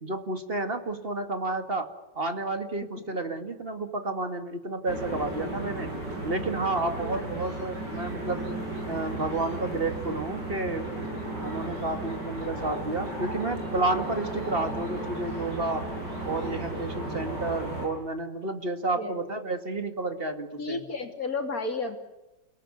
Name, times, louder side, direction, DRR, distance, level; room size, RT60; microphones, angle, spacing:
voice 1, 0.0-1.9 2.1-5.9 6.2-8.5 8.9-10.9 11.4-15.9 16.2-20.8, right 2 dB, 35° right, 7 dB, 2.4 m, -31 dB
sound 1, 4.9-17.9, right 1 dB, 75° right, 8.5 m, -35 dB
voice 2, 20.6-22.0, left 3 dB, 55° left, 4 dB, 3.5 m, -32 dB
29.0 x 18.5 x 9.9 m, 1.0 s
omnidirectional pair, 1.9 m